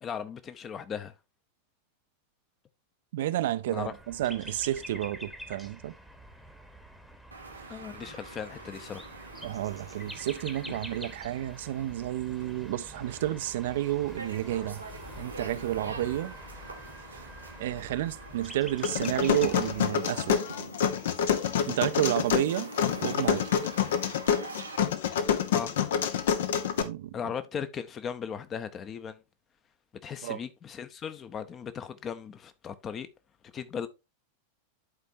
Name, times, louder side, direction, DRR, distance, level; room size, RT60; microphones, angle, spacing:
voice 1, 0.0-1.2 3.7-3.9 7.7-9.1 21.8-21.9 25.5-25.7 27.1-29.2 30.0-33.1 33.4-33.9, left 7 dB, 25° left, 0.8 m, -37 dB
voice 2, 3.1-5.9 7.7-7.8 9.4-14.8 15.2-16.3 17.6-20.4 21.7-22.7 23.0-23.5 26.8-27.2 30.2-30.4, right 13 dB, 55° right, 0.5 m, -31 dB
sound 1, 3.8-19.9, equal, 5° left, 1.1 m, -46 dB
sound 2, 7.3-24.8, right 3 dB, 80° right, 1.2 m, -46 dB
sound 3, 18.8-26.8, left 8 dB, 60° left, 0.7 m, -27 dB
11.0 x 4.3 x 2.6 m
figure-of-eight pair, 90°, 0 cm